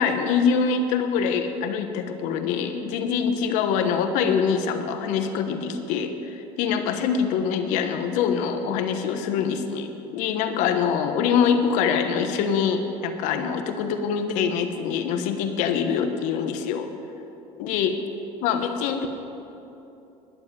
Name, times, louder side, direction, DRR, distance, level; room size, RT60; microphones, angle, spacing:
voice 1, 0.0-16.9 17.6-18.0 18.4-19.1, left 6 dB, 70° left, 7 dB, 1.2 m, -24 dB
11.5 x 7.3 x 9.5 m, 2.9 s
supercardioid pair, 115°, 13 cm